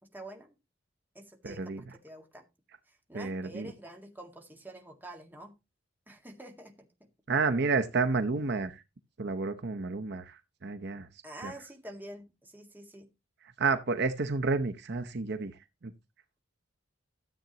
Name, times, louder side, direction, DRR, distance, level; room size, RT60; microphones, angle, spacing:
voice 1, 0.1-0.6 1.1-2.5 2.9-5.5 6.1-6.9 11.2-13.1, right 1 dB, 10° right, 1.9 m, -47 dB
voice 2, 1.4-1.8 3.1-3.7 7.3-8.8 9.2-11.1 11.4-11.5 13.6-15.9, right 4 dB, 55° right, 0.8 m, -30 dB
13.5 x 8.0 x 3.0 m
head